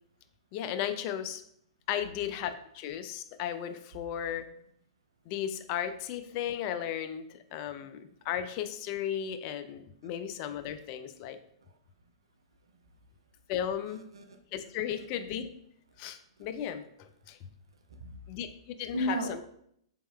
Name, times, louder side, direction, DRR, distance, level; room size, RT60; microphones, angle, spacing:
voice 1, 0.5-1.4 1.9-4.5 5.3-11.4 13.5-14.1 14.5-15.5 16.0-17.4 18.3-19.4, left 10 dB, 40° left, 10 dB, 0.3 m, -35 dB
voice 2, 13.9-14.4 15.0-15.1 16.4-16.5 17.9-18.2 18.9-19.4, equal, 75° right, 7 dB, 0.5 m, -36 dB
4.0 x 3.5 x 2.3 m, 0.70 s
hypercardioid pair, 115°, 3 cm